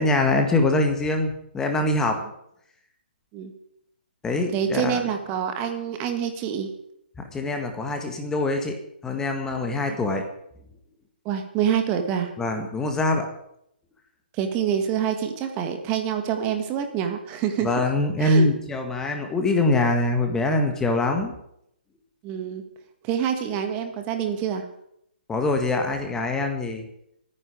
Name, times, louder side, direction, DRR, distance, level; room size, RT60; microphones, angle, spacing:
voice 1, 0.0-2.2 4.2-5.0 7.3-8.7 9.0-10.2 12.4-13.3 17.6-21.3 25.3-26.9, left 2 dB, 10° left, 4 dB, 1.6 m, -23 dB
voice 2, 4.5-6.7 9.9-10.0 11.3-12.3 14.4-17.7 18.2-18.5 22.2-22.6 23.0-24.7, right 8 dB, 25° right, 6 dB, 1.8 m, -26 dB
24.5 x 9.9 x 5.0 m, 0.75 s
figure-of-eight pair, 140°, 6 cm